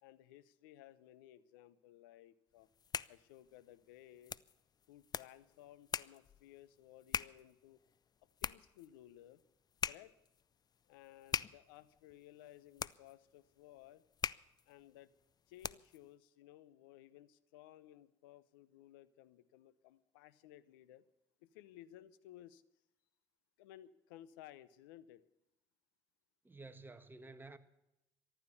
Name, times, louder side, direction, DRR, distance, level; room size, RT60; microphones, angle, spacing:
voice 1, 0.0-2.7 3.1-4.3 4.9-7.8 8.4-9.4 9.9-10.1 10.9-14.0 14.7-15.1 15.5-21.0 21.4-22.6 23.6-25.2, left 13 dB, 90° left, 0.8 m, -58 dB
sound 1, 2.6-16.1, left 7 dB, 35° left, 0.5 m, -44 dB
voice 2, 26.4-27.6, right 3 dB, 20° right, 1.6 m, -52 dB
14.5 x 12.0 x 7.0 m
supercardioid pair, 70°, 11 cm